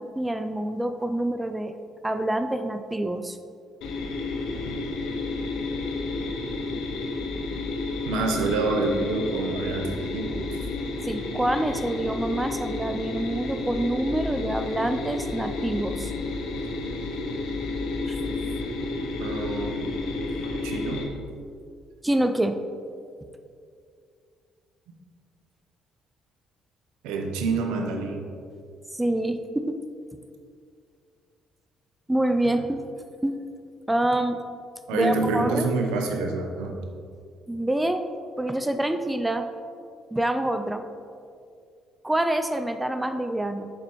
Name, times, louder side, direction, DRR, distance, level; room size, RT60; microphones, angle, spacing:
voice 1, 0.0-1.7 2.0-3.4 11.0-16.1 18.1-18.2 22.0-22.6 28.9-29.8 32.1-32.8 33.2-33.4 33.9-34.4 34.9-35.7 37.5-38.0 38.4-39.5 40.1-40.8 42.0-43.7, right 1 dB, 10° right, 8 dB, 0.5 m, -26 dB
sound 1, 3.8-21.0, left 3 dB, 75° left, 1.0 m, -31 dB
voice 2, 8.1-10.5 19.2-20.0 20.4-21.1 27.0-28.2 32.4-32.5 34.9-36.7, right 3 dB, 85° right, 2 dB, 0.8 m, -27 dB
7.0 x 6.7 x 3.1 m, 2.3 s
supercardioid pair, 70°, 0 cm